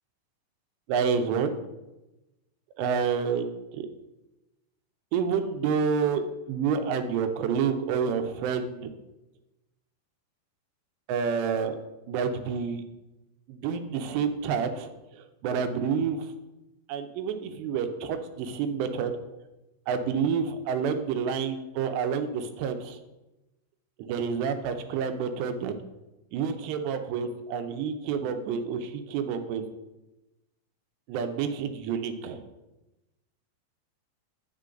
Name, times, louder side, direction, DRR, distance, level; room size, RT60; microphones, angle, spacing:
voice 1, 0.9-1.6 2.8-3.9 5.1-8.8 11.1-11.8 12.1-12.8 13.5-14.9 15.4-16.3 16.9-19.1 19.9-23.0 24.0-25.7 26.3-29.6 31.1-32.5, right 6 dB, 80° right, 8 dB, 2.7 m, -28 dB
9.5 x 6.5 x 3.8 m, 1.0 s
omnidirectional pair, 5.2 m